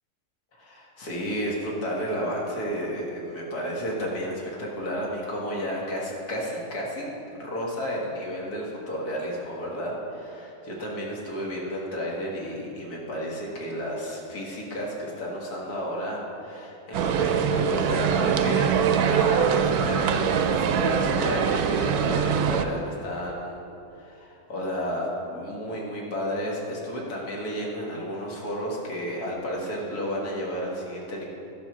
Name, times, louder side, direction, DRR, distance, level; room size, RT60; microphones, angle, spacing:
voice 1, 0.5-23.6 23.9-31.3, equal, 75° left, -3 dB, 2.2 m, -32 dB
sound 1, 16.9-22.6, right 7 dB, 80° right, 1.1 m, -23 dB
11.5 x 5.2 x 6.0 m, 2.8 s
omnidirectional pair, 1.6 m